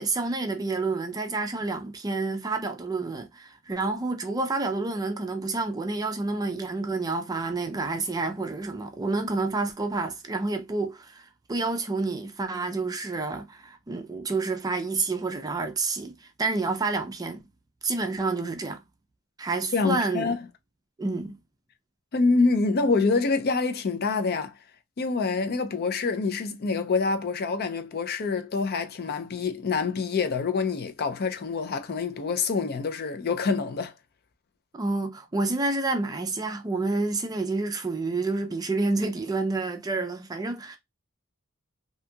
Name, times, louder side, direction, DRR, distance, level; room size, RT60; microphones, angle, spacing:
voice 1, 0.0-17.5 17.8-18.8 19.4-20.4 21.0-21.4 34.7-40.8, right 3 dB, 20° right, 0.4 m, -29 dB
voice 2, 19.7-20.4 22.1-24.5 25.0-33.9, left 4 dB, 50° left, 0.4 m, -26 dB
2.7 x 2.3 x 2.6 m
head